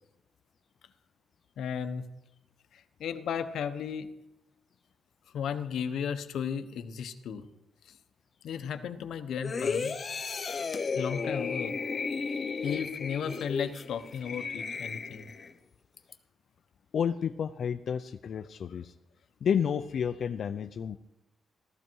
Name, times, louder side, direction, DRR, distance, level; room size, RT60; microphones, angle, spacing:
voice 1, 1.6-2.0 2.7-4.1 5.3-7.4 8.4-10.0 11.0-11.7 12.6-15.3, left 7 dB, 80° left, 9 dB, 1.1 m, -34 dB
sound 1, 9.4-15.5 16.0-16.1, left 5 dB, 35° left, 0.9 m, -34 dB
voice 2, 16.9-18.9 19.4-21.0, left 7 dB, 55° left, 7 dB, 0.5 m, -30 dB
16.5 x 13.5 x 4.7 m, 0.90 s
cardioid pair, 140°, 0 cm